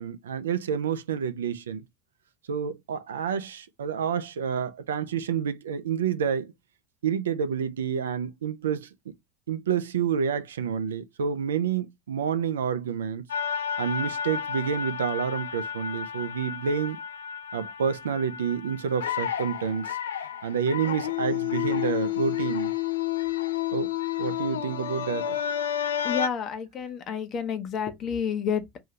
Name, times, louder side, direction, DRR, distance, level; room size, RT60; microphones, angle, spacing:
voice 1, 0.0-1.8 2.5-6.5 7.0-9.1 9.5-13.2 13.8-17.0 17.5-22.7 23.7-23.9 24.2-25.4, right 7 dB, 75° right, 0.4 m, -29 dB
sound 1, 13.3-26.3, left 10 dB, 75° left, 0.4 m, -31 dB
voice 2, 26.0-28.8, left 7 dB, 40° left, 0.8 m, -30 dB
2.7 x 2.7 x 3.2 m
figure-of-eight pair, 75°, 0 cm